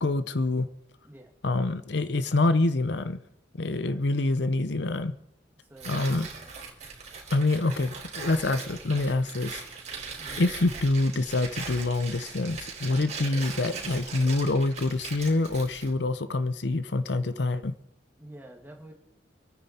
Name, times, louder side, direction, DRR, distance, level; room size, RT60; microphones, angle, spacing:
voice 1, 0.0-0.7 1.4-3.2 3.6-5.2 5.9-6.3 7.3-9.6 10.4-17.7, left 2 dB, 75° left, 12 dB, 0.7 m, -26 dB
voice 2, 5.7-6.5 10.2-10.4 18.2-18.9, right 1 dB, 10° right, 1 dB, 2.0 m, -48 dB
Tearing, 5.8-15.9, right 4 dB, 40° right, 4.0 m, -40 dB
26.5 x 9.6 x 4.3 m, 0.80 s
head